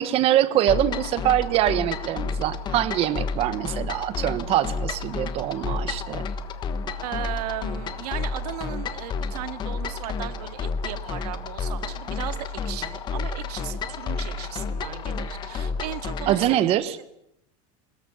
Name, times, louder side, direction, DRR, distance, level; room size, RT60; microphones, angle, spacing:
voice 1, 0.0-6.3 16.3-17.0, right 12 dB, 30° right, 16 dB, 1.1 m, -24 dB
sound 1, 0.7-16.6, left 4 dB, 20° left, 1.3 m, -31 dB
voice 2, 7.0-16.8, right 14 dB, 90° right, 11 dB, 2.0 m, -36 dB
23.5 x 20.5 x 8.5 m, 0.79 s
supercardioid pair, 180°, 20 cm